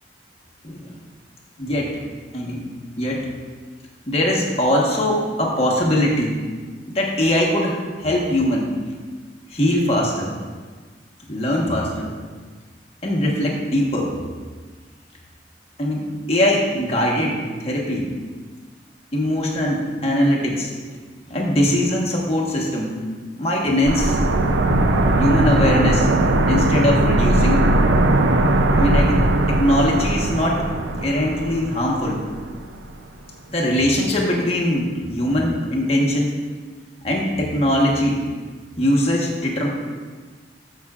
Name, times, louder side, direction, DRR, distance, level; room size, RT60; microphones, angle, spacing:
voice 1, 1.6-2.0 2.3-2.7 3.0-3.3 4.1-6.4 6.9-8.7 9.5-10.3 11.3-12.1 13.0-14.1 15.8-18.1 19.1-20.7 21.3-22.9 23.4-24.2 25.2-26.1 26.4-27.7 28.7-32.2 33.5-36.4 37.0-38.2 38.8-39.7, left 1 dB, 35° left, -2 dB, 1.3 m, -21 dB
sound 1, 23.9-32.6 32.8-32.9, right 1 dB, 80° right, 0.5 m, -19 dB
13.5 x 5.9 x 2.4 m, 1.5 s
head